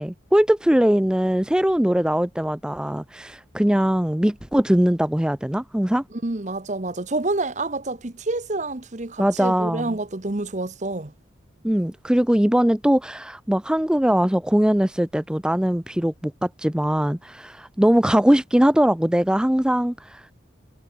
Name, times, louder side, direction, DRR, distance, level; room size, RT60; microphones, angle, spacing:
voice 1, 0.0-6.0 9.2-10.0 11.6-20.3, equal, 5° right, 0.4 m, -21 dB
voice 2, 6.2-11.1, right 2 dB, 40° right, 1.0 m, -28 dB
head